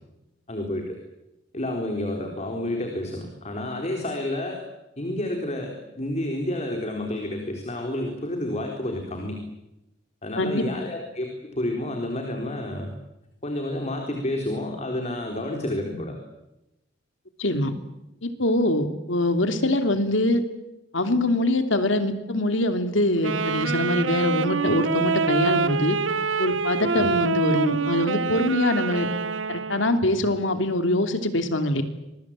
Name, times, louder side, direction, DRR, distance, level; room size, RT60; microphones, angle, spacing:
voice 1, 0.5-1.0 1.5-4.6 5.0-9.4 10.2-12.9 13.4-16.2 26.9-27.2, left 1 dB, 35° left, 2 dB, 4.0 m, -30 dB
voice 2, 17.4-17.7 18.2-20.4 20.9-26.0 26.4-29.1 29.5-31.8, left 1 dB, 75° left, 8 dB, 2.9 m, -23 dB
Wind instrument woodwind instrument, 23.2-30.1, right 4 dB, 75° right, 1.0 m, -26 dB
26.5 x 22.0 x 8.9 m, 0.93 s
head